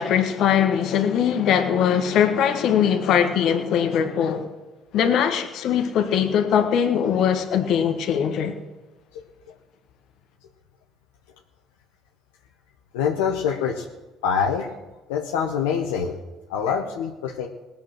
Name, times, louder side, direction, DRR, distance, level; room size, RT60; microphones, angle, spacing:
voice 1, 0.0-4.5 4.9-8.5, left 8 dB, 65° left, 1.6 m, -21 dB
voice 2, 12.9-13.9 14.2-14.7 15.1-16.2 16.5-17.5, left 7 dB, 85° left, 1.0 m, -25 dB
19.0 x 7.0 x 6.2 m
hypercardioid pair, 65°, 0 cm